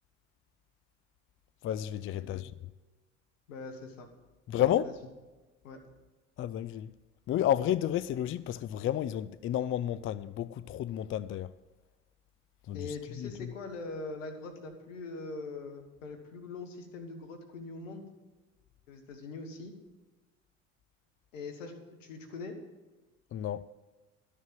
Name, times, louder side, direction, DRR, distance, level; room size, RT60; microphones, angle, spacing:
voice 1, 1.6-2.5 4.5-4.9 6.4-6.9 7.3-11.5 12.7-13.5 23.3-23.7, left 11 dB, 35° left, 0.4 m, -31 dB
voice 2, 2.1-2.5 3.5-4.1 4.6-4.7 5.6-5.8 12.7-18.1 18.9-19.7 21.3-22.6, left 3 dB, 85° left, 1.7 m, -42 dB
12.5 x 6.6 x 7.7 m
hypercardioid pair, 70°, 38 cm